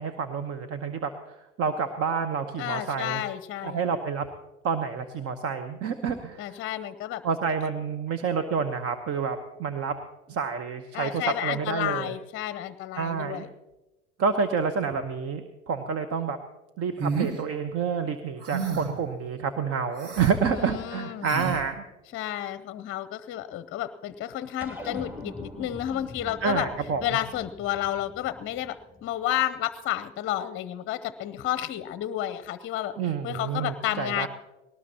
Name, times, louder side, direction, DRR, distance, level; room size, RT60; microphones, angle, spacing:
voice 1, 0.0-3.2 3.6-4.3 4.6-6.5 7.2-9.9 10.3-12.1 13.0-13.5 14.2-16.4 16.8-21.7 26.4-27.0 33.0-34.3, right 6 dB, 40° right, 8 dB, 1.1 m, -28 dB
voice 2, 2.6-3.9 6.4-7.2 10.9-13.5 20.5-21.3 22.1-26.7 27.0-32.9 33.2-34.3, left 12 dB, 35° left, 13 dB, 0.7 m, -31 dB
sound 1, 17.0-17.4 18.4-19.0 19.9-20.3 21.2-21.6, right 5 dB, 70° right, 2.4 m, -30 dB
sound 2, 24.6-29.3, left 2 dB, 5° right, 2.8 m, -43 dB
19.5 x 18.5 x 2.9 m, 1.0 s
hypercardioid pair, 80°, 35 cm